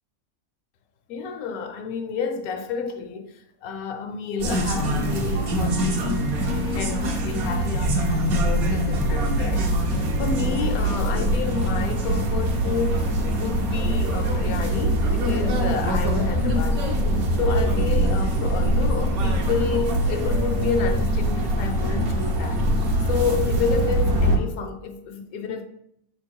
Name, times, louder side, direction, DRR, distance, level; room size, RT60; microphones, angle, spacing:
voice 1, 1.1-17.0 17.4-22.6 23.1-25.6, left 5 dB, 75° left, 1.1 m, -30 dB
sound 1, 4.4-24.4, right 1 dB, 75° right, 1.4 m, -23 dB
6.7 x 3.7 x 4.5 m
omnidirectional pair, 1.5 m